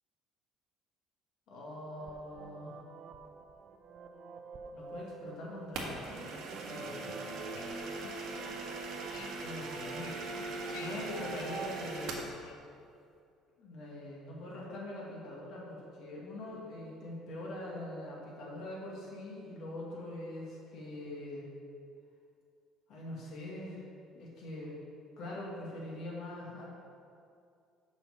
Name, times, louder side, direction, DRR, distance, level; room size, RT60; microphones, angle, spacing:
voice 1, 1.5-2.8 4.7-6.1 6.7-7.1 9.4-10.2 10.6-12.3 13.6-21.5 22.9-23.8 24.1-24.8 25.2-26.7, left 1 dB, 55° left, -4 dB, 1.9 m, -43 dB
sound 1, 2.0-11.9, right 5 dB, 40° right, 0.5 m, -49 dB
sound 2, 5.7-12.3, right 3 dB, 65° right, 1.4 m, -40 dB
sound 3, 5.8-12.6, left 7 dB, 90° left, 0.6 m, -54 dB
7.2 x 5.6 x 6.9 m, 2.4 s
cardioid pair, 165°, 0 cm